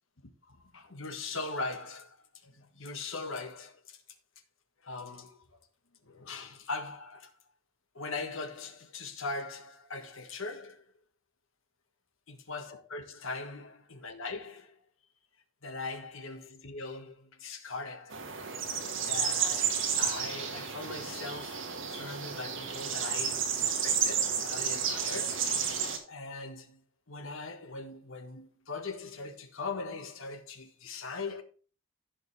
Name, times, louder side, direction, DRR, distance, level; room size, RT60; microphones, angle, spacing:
voice 1, 0.4-4.0 4.8-5.5 6.0-7.3 7.9-10.9 12.3-14.8 15.6-18.2 19.0-25.4 26.0-26.8 27.1-31.4, left 3 dB, 65° left, 1.4 m, -40 dB
sound 1, 18.1-26.0, right 7 dB, 60° right, 1.7 m, -31 dB
15.5 x 5.2 x 3.3 m
head